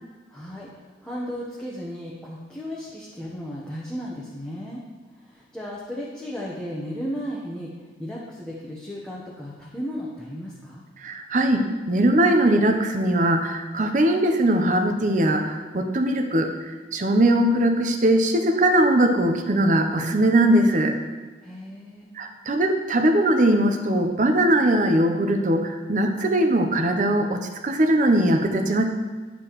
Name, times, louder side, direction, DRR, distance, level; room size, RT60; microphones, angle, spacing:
voice 1, 0.3-4.8 5.1-10.8 21.4-22.1, equal, 5° left, -6 dB, 0.9 m, -35 dB
voice 2, 11.0-21.0 22.2-28.8, right 1 dB, 45° right, 6 dB, 0.6 m, -20 dB
9.8 x 6.9 x 3.0 m, 1.4 s
head